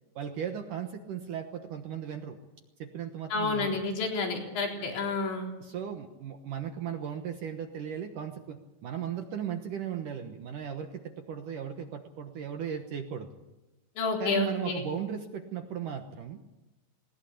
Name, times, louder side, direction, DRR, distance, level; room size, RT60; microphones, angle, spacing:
voice 1, 0.2-2.4 2.8-3.8 4.7-4.9 5.6-13.3 14.2-16.4, right 8 dB, 65° right, 5 dB, 2.2 m, -37 dB
voice 2, 3.3-5.5 14.0-14.8, left 4 dB, 85° left, 0 dB, 6.3 m, -30 dB
20.0 x 20.0 x 8.5 m, 1.0 s
omnidirectional pair, 5.1 m